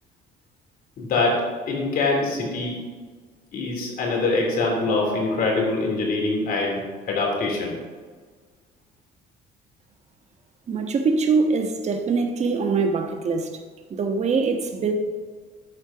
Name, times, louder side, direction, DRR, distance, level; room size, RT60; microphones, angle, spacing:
voice 1, 1.0-2.9 3.5-7.8, left 3 dB, 60° left, -1 dB, 3.2 m, -24 dB
voice 2, 10.7-13.5 13.9-14.9, right 4 dB, 40° right, 4 dB, 1.3 m, -23 dB
11.5 x 4.5 x 5.9 m, 1.5 s
cardioid pair, 110°, 17 cm